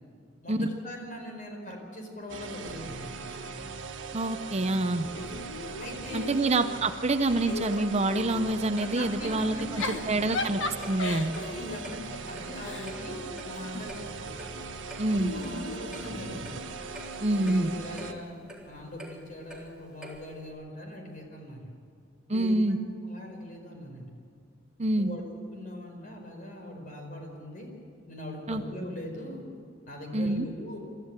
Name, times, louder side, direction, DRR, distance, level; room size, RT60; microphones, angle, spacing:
voice 1, 0.4-3.5 5.8-6.4 8.8-10.2 11.5-13.1 13.4-14.3 15.3-16.6 17.3-18.4 18.6-21.7 22.3-22.8 23.0-24.1 24.9-27.7 28.1-29.4 29.8-30.8, left 1 dB, 45° left, 2 dB, 4.8 m, -41 dB
sound 1, 2.3-18.1, right 4 dB, 85° right, 1.4 m, -40 dB
voice 2, 4.1-5.1 6.1-11.3 15.0-15.3 17.2-17.7 22.3-22.8 24.8-25.1 28.5-28.6 30.1-30.5, right 2 dB, 35° right, 9 dB, 0.7 m, -27 dB
Giggle / Chuckle chortle, 5.1-6.8 7.2-8.6 9.5-14.0 15.1-16.5, left 3 dB, 90° left, 1.5 m, -37 dB
Clock, 8.8-20.5, equal, 5° right, 3.8 m, -48 dB
23.5 x 14.0 x 9.0 m, 2.2 s
head